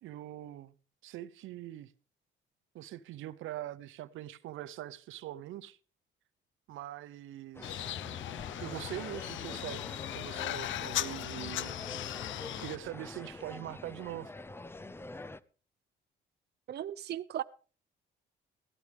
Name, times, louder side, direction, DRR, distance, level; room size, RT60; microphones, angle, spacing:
voice 1, 0.0-0.7 1.0-1.9 2.7-5.8 6.7-8.0 8.6-11.8 12.1-12.2 12.6-14.3, right 13 dB, 85° right, 0.9 m, -43 dB
sound 1, 7.5-15.4, left 2 dB, 10° left, 0.6 m, -46 dB
sound 2, 7.6-12.8, left 13 dB, 75° left, 0.5 m, -38 dB
voice 2, 16.7-17.4, right 11 dB, 55° right, 0.6 m, -36 dB
17.0 x 13.0 x 3.5 m
cardioid pair, 90°, 20 cm